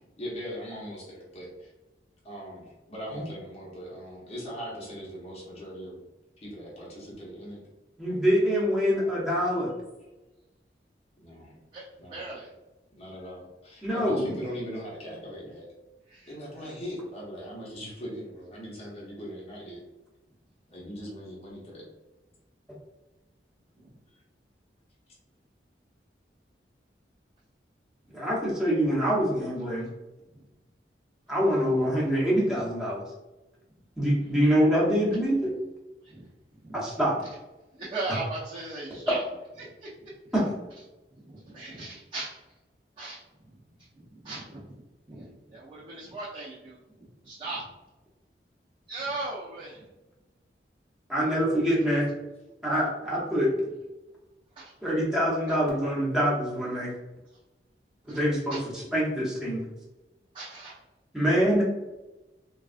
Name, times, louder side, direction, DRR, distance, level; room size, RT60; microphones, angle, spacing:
voice 1, 0.0-1.7 2.2-6.0 6.4-7.6 10.0-10.3 11.2-11.5 12.0-12.2 13.0-15.7 16.3-19.8 20.7-21.8, equal, 35° left, -5 dB, 0.8 m, -40 dB
voice 2, 8.0-9.7 13.8-14.3 28.1-29.9 31.3-33.0 34.0-35.5 36.7-37.2 40.3-40.4 51.1-52.1 52.6-53.5 54.8-56.9 58.1-59.6 61.1-61.6, equal, 5° right, -7 dB, 0.9 m, -25 dB
voice 3, 11.7-12.5 16.1-16.8 23.8-23.9 30.3-30.4 36.0-36.2 36.6-36.8 37.7-39.2 39.6-40.1 41.3-42.4 43.0-43.2 43.5-43.6 44.0-47.6 48.9-49.8 54.6-54.7 58.1-58.2 58.5-58.6 60.3-60.8, right 2 dB, 30° right, -9 dB, 0.6 m, -38 dB
3.3 x 2.3 x 2.4 m, 1.1 s
head